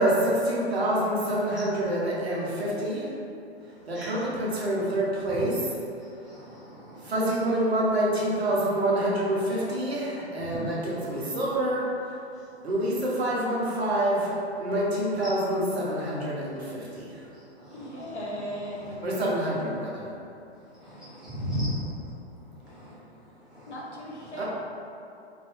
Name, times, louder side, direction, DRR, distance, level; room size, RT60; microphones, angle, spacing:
voice 1, 0.0-3.1 3.9-5.7 7.0-11.8 12.6-17.1 19.0-20.0 24.4-24.5, right 1 dB, 70° right, -5 dB, 1.0 m, -27 dB
voice 2, 6.2-7.1 10.5-10.7 15.2-15.3 17.6-18.2 18.7-19.0 20.8-21.9 22.6-22.9 23.5-23.7 24.2-24.3, equal, ahead, -11 dB, 0.4 m, -36 dB
voice 3, 17.7-19.1 23.7-24.4, equal, 85° left, -4 dB, 0.9 m, -37 dB
2.7 x 2.6 x 3.5 m, 2.6 s
figure-of-eight pair, 110°, 33 cm